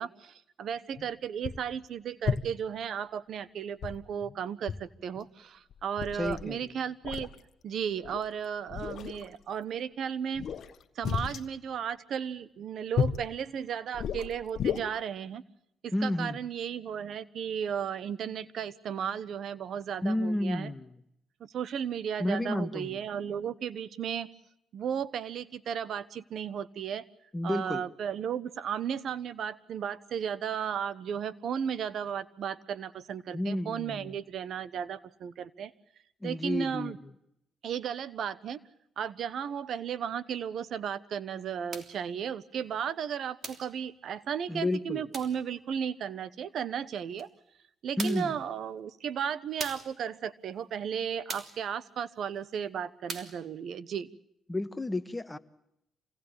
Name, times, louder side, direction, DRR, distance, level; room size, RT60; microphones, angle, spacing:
voice 1, 0.0-7.3 7.6-10.4 11.0-15.4 15.8-20.7 21.4-24.3 24.7-27.0 27.4-35.7 36.2-37.0 37.6-38.6 39.0-47.3 47.8-54.1, right 8 dB, 65° right, 17 dB, 1.1 m, -34 dB
sound 1, 1.0-1.1 1.4-1.7 2.2-2.7 3.8-4.3 4.7-4.9 5.2-5.3 5.7-6.5 7.0-7.4 8.1-8.3 8.7-9.3 10.3-11.5 13.0-13.3 13.9-14.8, left 7 dB, 65° left, 1.3 m, -33 dB
voice 2, 6.1-6.7 15.9-16.4 20.0-20.9 22.2-23.0 27.3-27.8 33.3-34.2 36.2-36.9 44.5-45.0 48.0-48.3 54.5-55.4, left 1 dB, 15° left, 11 dB, 1.4 m, -31 dB
sound 2, 41.7-42.0 43.4-43.7 45.1-45.4 47.2-47.3 48.0-48.4 49.6-50.0 51.3-51.6 53.1-53.4, right 4 dB, 45° right, 3.2 m, -40 dB
27.0 x 18.0 x 8.8 m, 0.80 s
cardioid pair, 90°, 0 cm